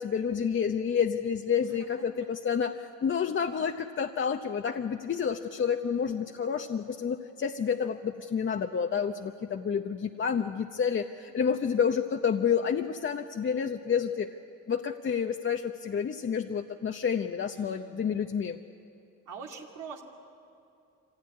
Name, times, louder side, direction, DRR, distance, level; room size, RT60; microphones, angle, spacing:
voice 1, 0.0-14.4 14.7-18.6, left 7 dB, 40° left, 5 dB, 0.8 m, -29 dB
voice 2, 1.6-2.3 11.4-11.8 17.5-18.2 19.3-20.0, right 5 dB, 85° right, 0 dB, 2.8 m, -46 dB
24.5 x 16.0 x 9.7 m, 2.6 s
cardioid pair, 90°, 30 cm